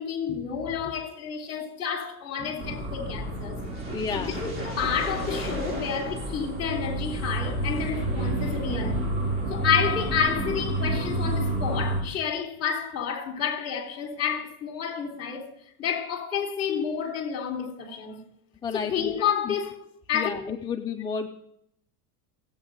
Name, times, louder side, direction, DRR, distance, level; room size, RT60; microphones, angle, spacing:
voice 1, 0.0-3.8 4.1-9.1 9.5-15.5 15.8-18.2 18.7-19.8 20.1-20.3, left 7 dB, 30° left, 3.7 m, -29 dB
sound 1, 2.6-12.0, right 1 dB, 25° right, 5.0 m, -30 dB
voice 2, 3.9-4.3 18.6-19.6 20.1-21.3, left 5 dB, 10° left, 0.3 m, -32 dB
17.0 x 8.8 x 3.8 m
supercardioid pair, 120°, 47 cm